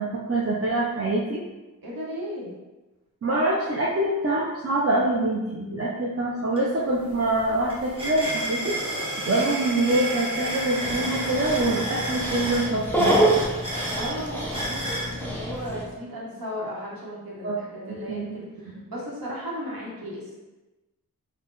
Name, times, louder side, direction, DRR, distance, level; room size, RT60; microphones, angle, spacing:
voice 1, 0.0-1.4 3.2-8.7 9.2-13.2 17.4-17.5 17.9-18.4, right 2 dB, 45° right, -5 dB, 0.5 m, -25 dB
voice 2, 1.8-2.5 14.0-20.3, equal, 85° right, -5 dB, 1.0 m, -35 dB
sound 1, 6.6-6.7 7.0-15.1, right 1 dB, 15° right, 1.0 m, -31 dB
Dog, 10.8-15.8, right 1 dB, 5° left, 0.6 m, -27 dB
3.7 x 2.2 x 3.8 m, 1.1 s
wide cardioid pair, 105°, 35 cm